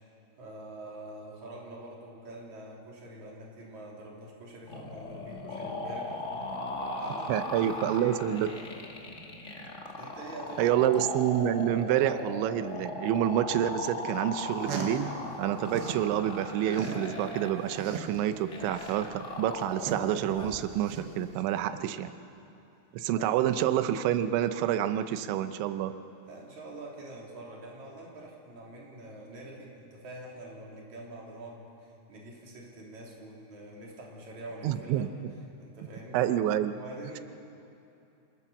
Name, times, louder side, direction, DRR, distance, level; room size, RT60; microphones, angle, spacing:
voice 1, 0.4-6.5 7.0-8.1 10.0-11.1 23.2-23.4 26.2-35.1 35.6-36.2 36.7-37.2, right 1 dB, 45° right, -3 dB, 4.5 m, -45 dB
sound 1, 4.7-20.6, left 2 dB, 65° left, 0.7 m, -38 dB
voice 2, 7.3-8.5 10.6-15.1 15.4-22.1 22.9-25.9 34.6-35.3 36.1-36.7, right 11 dB, 90° right, 10 dB, 3.1 m, -28 dB
sound 2, 14.3-16.1 16.4-21.4, right 5 dB, 75° right, 4.0 m, -40 dB
27.0 x 17.5 x 7.1 m, 2.8 s
omnidirectional pair, 5.2 m